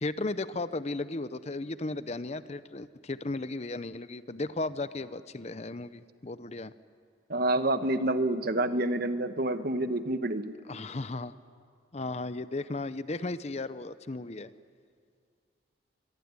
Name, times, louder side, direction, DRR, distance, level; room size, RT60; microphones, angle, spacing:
voice 1, 0.0-6.7 10.7-11.3 11.9-14.5, left 2 dB, 35° left, 14 dB, 0.6 m, -35 dB
voice 2, 7.3-10.5, right 1 dB, 50° right, 10 dB, 1.1 m, -28 dB
25.0 x 23.0 x 9.7 m, 2.2 s
head